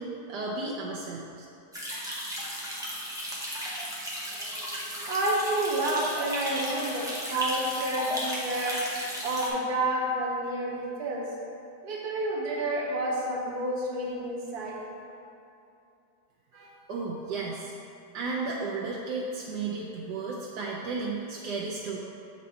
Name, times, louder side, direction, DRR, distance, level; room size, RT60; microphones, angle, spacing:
voice 1, 0.0-1.4 16.5-17.7 18.1-22.0, right 3 dB, 85° right, -4 dB, 1.3 m, -34 dB
sound 1, 1.7-9.5, equal, 5° right, 0.8 m, -35 dB
voice 2, 4.4-8.8 9.2-11.3 11.8-14.8, right 1 dB, 70° right, -2 dB, 1.5 m, -30 dB
7.5 x 4.1 x 4.2 m, 2.7 s
omnidirectional pair, 1.8 m